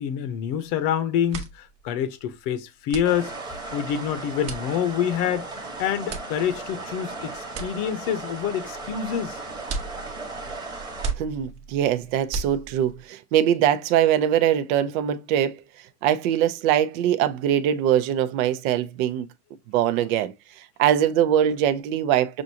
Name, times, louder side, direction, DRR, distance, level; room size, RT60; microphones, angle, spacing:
voice 1, 0.0-3.3 3.7-5.5 5.8-9.4, left 9 dB, 45° left, 0.8 m, -27 dB
sound 1, 0.6-0.9 1.1-13.1, right 4 dB, 35° right, 1.0 m, -37 dB
sound 2, 3.0-11.1, right 3 dB, 10° right, 1.1 m, -36 dB
voice 2, 11.2-15.6 16.0-19.3 19.7-20.3 20.8-22.4, right 10 dB, 60° right, 0.7 m, -22 dB
6.2 x 2.5 x 2.7 m
supercardioid pair, 150°, 46 cm